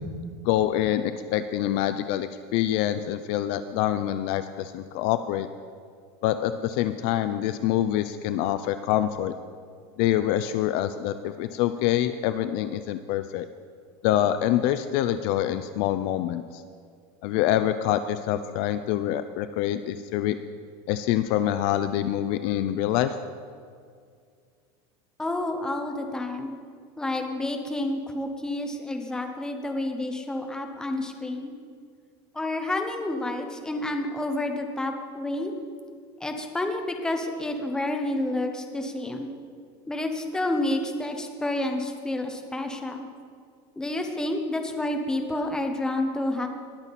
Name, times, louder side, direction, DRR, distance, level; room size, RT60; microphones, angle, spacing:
voice 1, 0.4-5.5 6.2-9.3 10.0-13.5 14.0-16.6 17.2-20.4 20.9-23.2, left 12 dB, 45° left, 11 dB, 0.4 m, -26 dB
voice 2, 25.2-26.5 27.0-31.5 32.3-35.5 36.2-39.3 39.9-43.0 43.8-46.5, left 1 dB, 5° left, 4 dB, 0.8 m, -29 dB
20.5 x 7.3 x 4.1 m, 2.2 s
supercardioid pair, 170°, 13 cm